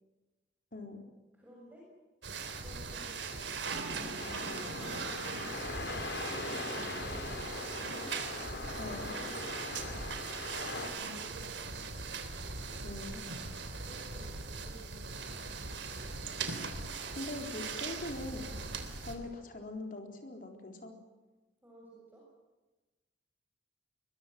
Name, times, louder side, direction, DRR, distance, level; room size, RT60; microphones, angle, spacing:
voice 1, 0.7-1.0 8.8-9.1 12.8-13.3 17.1-18.6 19.0-21.0, left 2 dB, 50° left, 3 dB, 4.2 m, -42 dB
voice 2, 1.3-1.8 2.6-3.3 3.9-7.6 8.8-11.8 13.8-15.4 21.6-22.2, right 2 dB, 10° right, -4 dB, 6.9 m, -55 dB
sound 1, 2.2-19.2, right 4 dB, 85° right, 3.4 m, -40 dB
sound 2, 4.2-10.9, left 2 dB, 65° left, 3.7 m, -41 dB
23.5 x 22.0 x 7.7 m, 1.2 s
head